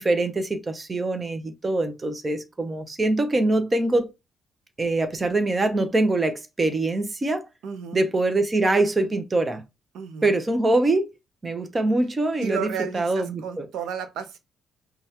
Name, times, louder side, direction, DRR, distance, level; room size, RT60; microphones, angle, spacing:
voice 1, 0.0-4.1 4.8-7.5 7.9-9.6 10.2-11.1 11.4-12.7 12.9-13.7, right 2 dB, 20° right, 0.6 m, -23 dB
voice 2, 7.6-8.0 9.9-10.3 12.4-14.4, right 7 dB, 80° right, 0.7 m, -32 dB
5.3 x 2.3 x 2.8 m
cardioid pair, 145°, 0 cm